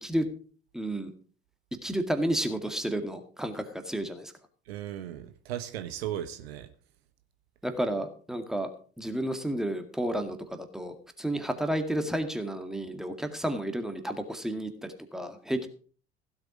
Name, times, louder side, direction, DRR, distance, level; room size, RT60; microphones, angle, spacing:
voice 1, 0.7-1.1 1.8-4.3 7.6-8.7 9.0-15.7, right 1 dB, ahead, 2.0 m, -31 dB
voice 2, 4.7-6.7, right 11 dB, 70° right, 1.1 m, -36 dB
16.0 x 7.8 x 5.1 m
figure-of-eight pair, 60°, 32 cm